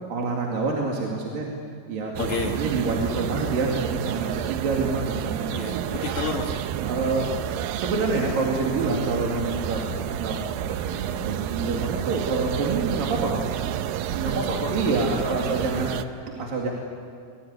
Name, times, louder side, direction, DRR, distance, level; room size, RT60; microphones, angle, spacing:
voice 1, 0.1-1.5 1.9-2.1 2.6-5.8 6.9-7.3 7.8-9.8 10.1-10.4 10.8-13.5 14.1-16.7, right 3 dB, 55° right, -1 dB, 3.9 m, -27 dB
voice 2, 2.2-2.6 5.5-6.6 14.2-15.0 15.2-15.8, left 5 dB, 55° left, 2 dB, 2.4 m, -32 dB
sound 1, 2.2-16.1, right 11 dB, 85° right, 2.0 m, -30 dB
24.5 x 22.0 x 9.8 m, 2.3 s
omnidirectional pair, 5.1 m